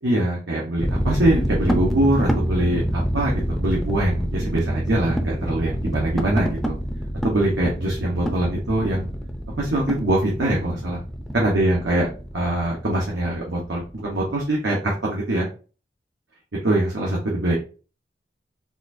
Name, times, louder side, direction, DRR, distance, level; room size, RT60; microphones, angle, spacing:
voice 1, 0.0-6.8 7.2-9.1 9.6-11.0 11.3-12.1 12.3-15.5 16.6-17.6, right 1 dB, 85° right, -3 dB, 1.0 m, -23 dB
sound 1, 0.8-14.4, equal, ahead, 0.5 m, -27 dB
4.1 x 2.5 x 2.7 m, 0.36 s
head